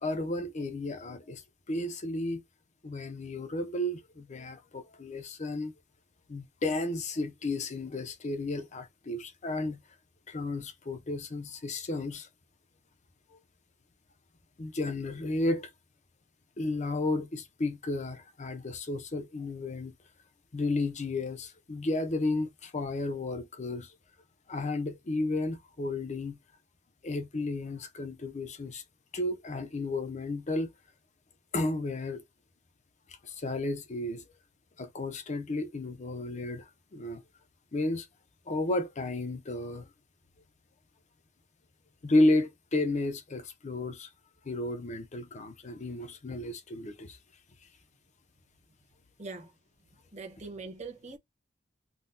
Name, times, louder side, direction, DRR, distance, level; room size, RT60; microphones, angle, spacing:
voice 1, 0.0-2.4 2.8-5.7 6.3-9.8 10.3-12.3 13.3-13.4 14.6-15.7 16.6-19.9 20.5-23.9 24.5-26.4 27.0-28.8 29.1-30.7 31.5-32.2 33.1-34.3 34.8-37.2 37.7-38.1 38.5-39.9 42.0-44.1 44.4-47.2, left 2 dB, 40° left, 0.6 m, -32 dB
voice 2, 49.2-49.5 50.1-51.2, right 3 dB, 35° right, 1.1 m, -42 dB
3.7 x 2.2 x 2.6 m
head